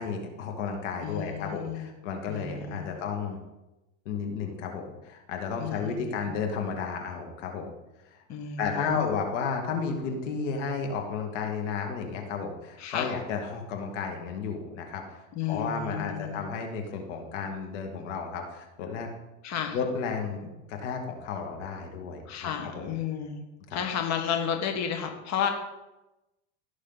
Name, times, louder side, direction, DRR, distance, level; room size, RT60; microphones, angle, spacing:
voice 1, 0.0-3.4 4.1-7.7 8.1-8.2 8.6-19.1 19.7-22.9 23.7-23.8, left 5 dB, 80° left, 3 dB, 2.1 m, -33 dB
voice 2, 1.0-1.9 2.3-3.0 5.6-6.3 8.3-9.1 12.8-13.1 15.3-16.4 19.4-19.8 22.3-23.4 23.7-25.5, left 7 dB, 45° left, 4 dB, 1.6 m, -32 dB
18.0 x 6.3 x 4.1 m, 0.99 s
supercardioid pair, 100°, 36 cm